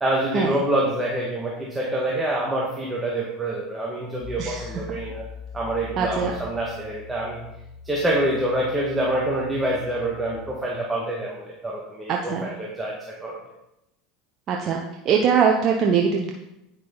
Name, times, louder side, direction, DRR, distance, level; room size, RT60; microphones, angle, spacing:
voice 1, 0.0-5.3 5.5-7.4 7.8-13.4, right 1 dB, 10° right, -4 dB, 1.9 m, -26 dB
sound 1, 4.2-10.4, left 6 dB, 40° left, 2.2 m, -41 dB
voice 2, 6.0-6.3 12.1-12.5 14.5-14.8 15.0-16.3, right 6 dB, 45° right, 1 dB, 1.0 m, -21 dB
9.5 x 6.4 x 4.1 m, 0.89 s
hypercardioid pair, 85°, 0 cm